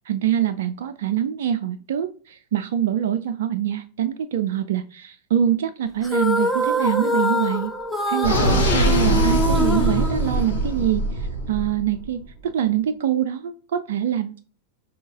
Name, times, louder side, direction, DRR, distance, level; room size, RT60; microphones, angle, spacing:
voice 1, 0.1-7.7 8.1-14.4, right 10 dB, 55° right, 7 dB, 0.4 m, -24 dB
sound 1, 6.0-10.9, left 1 dB, 5° left, 0.7 m, -25 dB
sound 2, 8.2-12.1, right 1 dB, 65° left, 1.2 m, -22 dB
5.3 x 2.8 x 3.5 m, 0.38 s
figure-of-eight pair, 90°, 0 cm